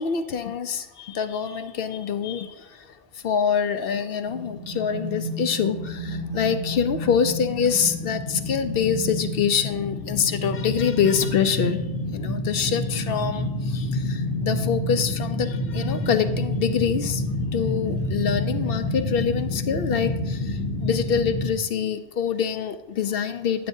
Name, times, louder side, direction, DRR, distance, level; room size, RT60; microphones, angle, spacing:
voice 1, 0.0-11.8 12.1-17.2 17.5-23.7, left 7 dB, 65° left, 9 dB, 0.8 m, -25 dB
sound 1, 4.3-21.5, left 1 dB, 85° left, 1.3 m, -29 dB
10.0 x 9.0 x 2.7 m, 0.94 s
omnidirectional pair, 1.1 m